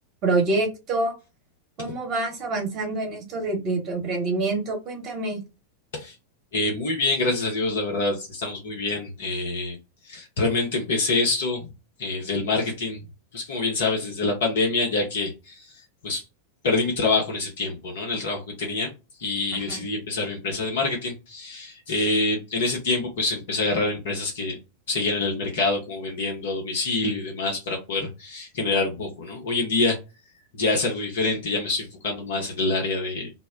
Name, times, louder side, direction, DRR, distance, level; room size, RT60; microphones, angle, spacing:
voice 1, 0.2-1.1 1.8-5.4 19.7-19.8, right 2 dB, 35° right, 2 dB, 1.0 m, -26 dB
voice 2, 6.5-9.8 10.0-11.7 12.0-13.0 13.3-16.2 16.6-18.9 19.2-24.6 24.9-30.0 30.5-33.3, left 3 dB, 60° left, 0 dB, 0.7 m, -26 dB
2.1 x 2.0 x 3.6 m, 0.28 s
figure-of-eight pair, 90°, 0 cm